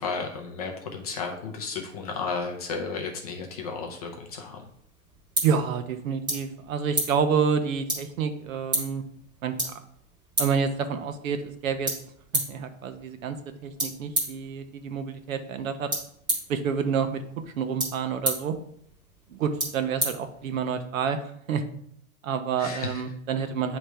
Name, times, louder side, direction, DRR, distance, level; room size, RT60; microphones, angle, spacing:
voice 1, 0.0-4.7 22.6-23.0, left 4 dB, 30° left, 2 dB, 0.5 m, -33 dB
sound 1, 4.6-20.9, right 1 dB, 10° right, 1.3 m, -34 dB
voice 2, 5.4-9.0 9.4-9.7 10.4-11.9 12.3-13.4 13.6-15.9 16.5-17.2 17.6-18.6 19.3-21.6 22.2-23.8, right 6 dB, 65° right, 8 dB, 0.9 m, -28 dB
9.0 x 3.1 x 3.3 m, 0.69 s
supercardioid pair, 165°, 43 cm